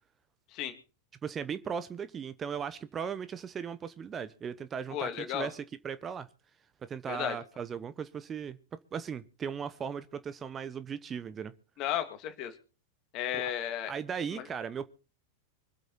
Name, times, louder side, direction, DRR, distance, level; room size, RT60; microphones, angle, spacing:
voice 1, 1.2-6.3 6.8-8.6 8.9-11.5 13.3-13.5 13.9-14.9, right 7 dB, 25° right, 0.9 m, -37 dB
voice 2, 4.9-5.5 7.1-7.4 11.8-12.5 13.1-13.9 14.3-14.5, left 11 dB, 40° left, 2.4 m, -34 dB
25.0 x 8.4 x 4.3 m
figure-of-eight pair, 90°, 0 cm